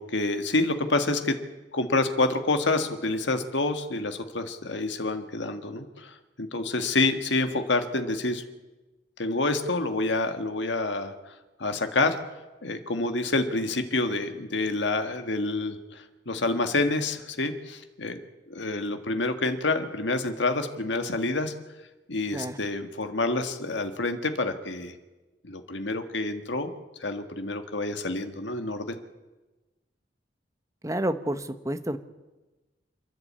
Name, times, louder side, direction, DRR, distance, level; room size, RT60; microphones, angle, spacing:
voice 1, 0.0-1.3 1.7-8.4 9.2-11.1 11.6-12.2 12.6-18.2 18.5-21.5 22.1-24.9 25.4-26.7 27.0-29.0, left 2 dB, 75° left, 7 dB, 1.7 m, -28 dB
voice 2, 30.8-32.0, right 1 dB, 15° right, 10 dB, 0.9 m, -29 dB
28.0 x 10.5 x 8.7 m, 1.1 s
head